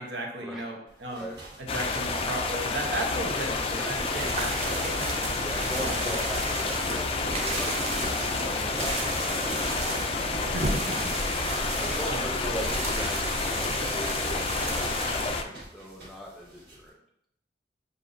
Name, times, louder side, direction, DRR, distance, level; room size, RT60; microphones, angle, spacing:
voice 1, 0.0-1.3 1.6-5.0 5.8-6.2 10.2-11.0 11.7-12.6, right 1 dB, 90° right, 1 dB, 0.9 m, -35 dB
sound 1, 0.9-16.9, right 1 dB, 70° right, 1.7 m, -45 dB
Waterfall with nature surrounding ambience, 1.7-15.4, left 3 dB, 30° left, 0.3 m, -30 dB
sound 2, 3.9-15.3, right 2 dB, 35° right, 0.6 m, -34 dB
voice 2, 5.4-9.7 11.6-17.0, equal, ahead, -2 dB, 0.7 m, -40 dB
6.6 x 2.6 x 2.6 m, 0.77 s
head